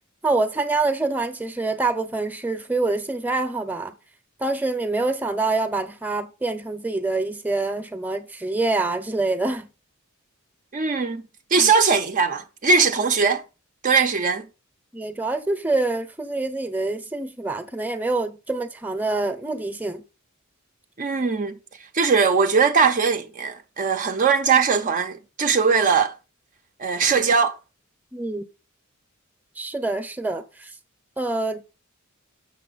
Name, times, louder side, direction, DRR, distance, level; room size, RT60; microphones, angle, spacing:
voice 1, 0.2-3.9 4.4-9.7 11.6-11.7 14.9-20.0 28.1-28.4 29.6-30.7 31.2-31.6, right 3 dB, 10° right, 0.8 m, -26 dB
voice 2, 10.7-11.2 11.5-13.4 13.8-14.5 21.0-21.6 21.9-26.1 26.8-27.6, right 5 dB, 40° right, 0.6 m, -20 dB
6.9 x 6.3 x 4.0 m
head